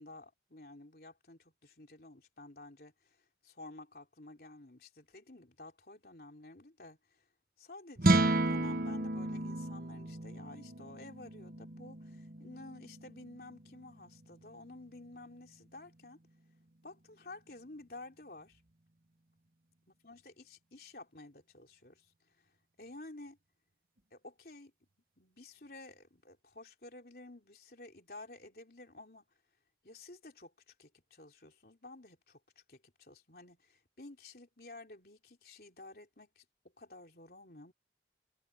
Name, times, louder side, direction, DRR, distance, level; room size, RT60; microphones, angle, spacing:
voice 1, 0.0-2.9 3.4-7.0 7.6-16.2 16.8-18.6 19.9-22.1 22.8-23.4 24.1-24.7 25.2-29.2 29.8-32.4 32.7-36.4 36.8-37.7, left 2 dB, 55° left, 3.7 m, -52 dB
sound 1, 8.0-14.3, right 2 dB, 50° right, 1.1 m, -33 dB
head